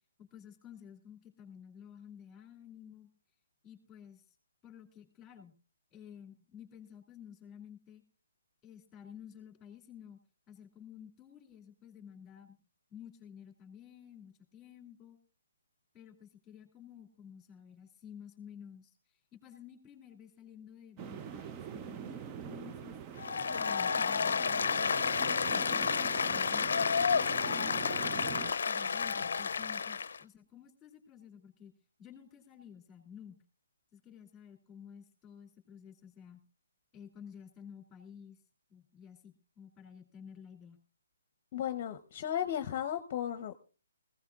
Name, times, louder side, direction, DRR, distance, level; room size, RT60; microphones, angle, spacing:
voice 1, 0.2-3.1 3.6-4.2 4.6-5.5 5.9-8.0 8.6-10.2 10.5-12.6 12.9-15.2 15.9-19.0 19.3-23.0 23.5-25.0 25.5-26.9 27.5-31.7 32.0-33.4 33.9-36.4 36.9-38.4 38.7-40.8, left 8 dB, 10° left, 5 dB, 2.8 m, -52 dB
sound 1, 21.0-28.5, right 8 dB, 20° right, 0.5 m, -44 dB
Applause, 23.2-30.2, left 6 dB, 70° left, 0.5 m, -31 dB
voice 2, 41.5-43.5, left 10 dB, 35° left, 9 dB, 0.8 m, -35 dB
19.5 x 16.0 x 2.4 m, 0.35 s
hypercardioid pair, 155°, 0 cm